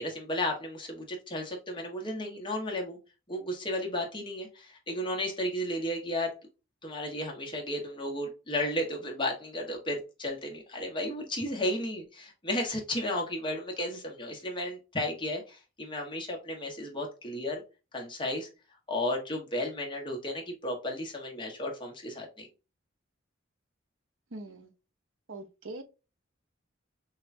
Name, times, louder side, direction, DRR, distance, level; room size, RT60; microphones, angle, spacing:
voice 1, 0.0-3.0 3.3-6.3 6.8-17.6 17.9-18.5 18.9-22.5, left 1 dB, 25° left, 1.2 m, -33 dB
voice 2, 24.3-24.7 25.3-25.8, right 2 dB, 75° right, 0.8 m, -42 dB
6.3 x 2.3 x 2.6 m
head